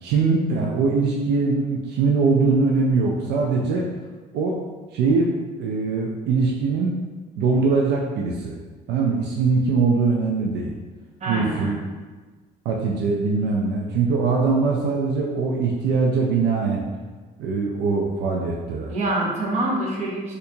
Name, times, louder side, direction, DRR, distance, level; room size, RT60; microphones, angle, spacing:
voice 1, 0.0-3.8 4.3-4.6 4.9-5.3 5.6-6.9 7.4-8.6 8.9-10.7 11.3-11.8 12.6-16.9 17.4-18.9, right 4 dB, 80° right, -1 dB, 0.4 m, -22 dB
voice 2, 11.2-11.8 18.9-20.3, right 2 dB, 40° right, -3 dB, 0.9 m, -25 dB
4.3 x 2.5 x 2.7 m, 1.3 s
cardioid pair, 110°, 17 cm